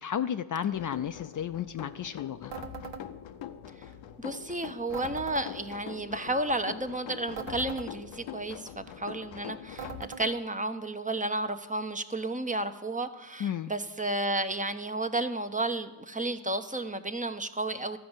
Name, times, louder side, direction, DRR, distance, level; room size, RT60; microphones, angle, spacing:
voice 1, 0.0-2.5 13.4-13.7, left 9 dB, 40° left, 10 dB, 0.5 m, -33 dB
sound 1, 0.7-10.0, left 9 dB, 70° left, 0.8 m, -43 dB
sound 2, 2.5-3.0 4.9-5.5 7.3-7.9 9.8-10.3, right 6 dB, 65° right, 1.2 m, -40 dB
voice 2, 4.2-18.0, right 2 dB, 15° right, 9 dB, 0.8 m, -32 dB
13.0 x 5.1 x 8.0 m, 1.2 s
hypercardioid pair, 40°, 47 cm